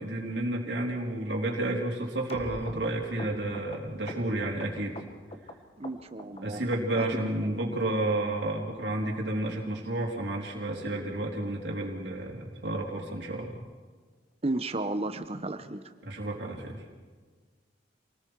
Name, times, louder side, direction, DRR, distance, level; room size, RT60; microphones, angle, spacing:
voice 1, 0.0-5.0 6.4-13.6 16.0-16.8, right 1 dB, 75° right, -1 dB, 3.5 m, -31 dB
sound 1, 2.3-5.5 5.8-6.4 6.7-7.3 7.6-7.7 7.9-8.2 8.5-8.6 8.8-9.0 9.4-9.5 9.7-9.9 10.2-10.3 10.6-10.8 11.1-11.2 11.5-11.7 12.0-12.1, left 1 dB, 35° left, 1.6 m, -44 dB
voice 2, 5.8-6.6 7.0-7.8 14.4-15.8, right 2 dB, 35° right, 9 dB, 1.1 m, -34 dB
28.0 x 19.5 x 4.8 m, 1.5 s
head